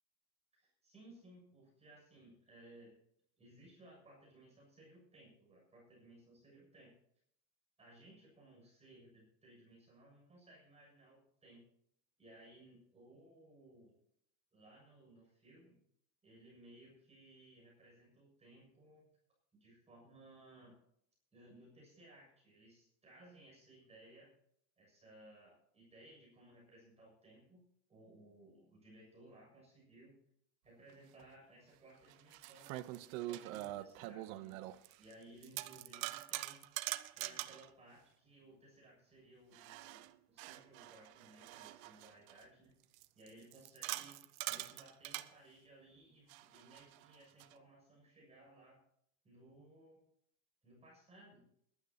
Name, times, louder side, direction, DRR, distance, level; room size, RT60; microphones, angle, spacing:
voice 1, 0.5-3.0 3.4-6.9 7.8-11.6 12.2-14.0 14.5-15.8 16.2-19.0 19.5-20.8 21.3-24.3 24.8-30.2 30.6-36.7 37.2-48.8 49.2-50.0 50.6-51.5, right 1 dB, 15° right, -3 dB, 6.8 m, -61 dB
sound 1, 31.2-31.3 32.0-35.1 35.4-37.7 39.5-42.4 42.9-45.3 46.3-47.5, right 17 dB, 65° right, 0.9 m, -44 dB
21.5 x 12.5 x 2.9 m, 0.70 s
supercardioid pair, 155°, 44 cm